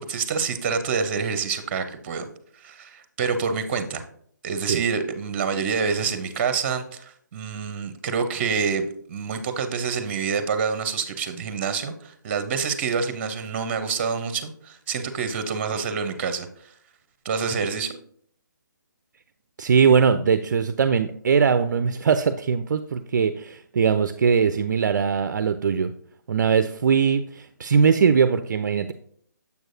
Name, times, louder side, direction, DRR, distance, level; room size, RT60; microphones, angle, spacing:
voice 1, 0.0-2.3 2.6-4.0 4.4-16.5 17.2-18.0, right 5 dB, 35° right, 9 dB, 0.7 m, -27 dB
voice 2, 19.6-25.9 26.3-28.9, right 6 dB, 60° right, 10 dB, 0.4 m, -21 dB
6.9 x 6.2 x 2.6 m, 0.62 s
figure-of-eight pair, 145°, 11 cm